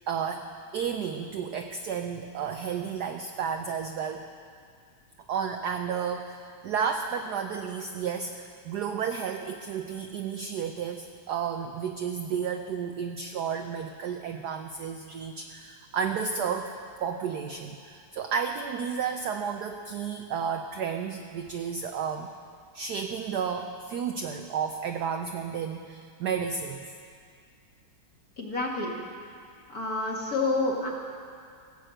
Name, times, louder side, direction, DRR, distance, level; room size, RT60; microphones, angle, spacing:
voice 1, 0.1-4.3 5.3-16.7 17.0-22.3 22.7-26.9, right 7 dB, 70° right, 6 dB, 0.9 m, -32 dB
voice 2, 28.4-28.9 29.7-30.9, left 2 dB, 45° left, -2 dB, 2.3 m, -28 dB
16.0 x 8.5 x 7.7 m, 2.2 s
omnidirectional pair, 2.4 m